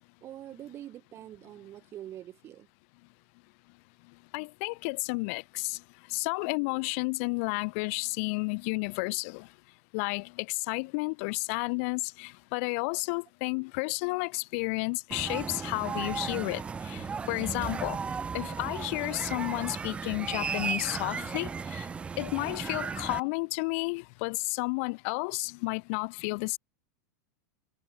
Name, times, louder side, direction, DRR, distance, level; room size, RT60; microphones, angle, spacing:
voice 1, 0.2-2.7, right 12 dB, 30° right, 5.5 m, -44 dB
voice 2, 4.3-5.8 6.1-9.5 9.9-18.0 18.3-21.9 22.2-26.6, left 31 dB, 50° left, 3.6 m, -32 dB
sound 1, 15.1-23.2, right 5 dB, 10° right, 0.6 m, -35 dB
supercardioid pair, 150°, 9 cm